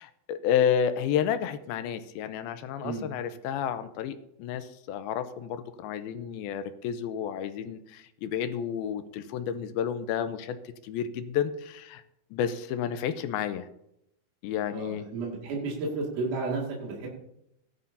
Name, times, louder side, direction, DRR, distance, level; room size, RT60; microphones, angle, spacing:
voice 1, 0.0-12.0 12.3-13.7 14.4-15.1, left 8 dB, 90° left, 11 dB, 2.6 m, -31 dB
voice 2, 14.7-17.1, right 3 dB, 60° right, -3 dB, 3.6 m, -32 dB
17.0 x 11.5 x 2.7 m, 0.79 s
omnidirectional pair, 4.4 m